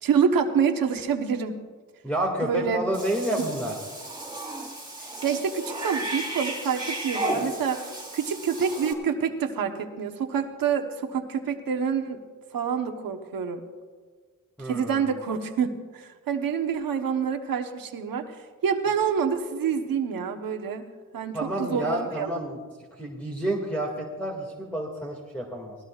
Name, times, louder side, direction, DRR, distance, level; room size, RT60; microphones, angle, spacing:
voice 1, 0.0-1.6 2.4-2.8 3.3-3.4 5.2-7.8 8.1-12.2 12.5-13.6 14.6-18.3 18.6-20.9 21.1-22.3, right 7 dB, 90° right, 5 dB, 1.2 m, -27 dB
voice 2, 2.0-3.8 14.6-15.0 21.3-22.6 22.9-25.8, right 1 dB, 5° left, -2 dB, 2.1 m, -29 dB
Cat / Bathtub (filling or washing), 2.9-8.9, right 1 dB, 15° right, 4.0 m, -34 dB
19.0 x 18.5 x 2.4 m, 1.5 s
cardioid pair, 70°, 33 cm